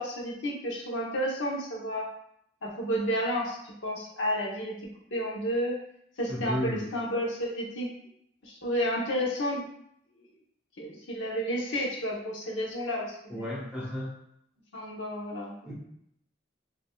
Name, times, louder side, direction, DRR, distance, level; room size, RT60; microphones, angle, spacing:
voice 1, 0.0-2.0 2.6-4.8 5.1-5.8 6.2-7.9 8.4-9.6 10.8-13.5 14.7-15.7, equal, 90° left, -2 dB, 0.9 m, -31 dB
voice 2, 6.3-6.9 13.3-14.1 15.6-15.7, left 1 dB, 5° right, -6 dB, 1.1 m, -33 dB
5.1 x 2.6 x 2.3 m, 0.73 s
head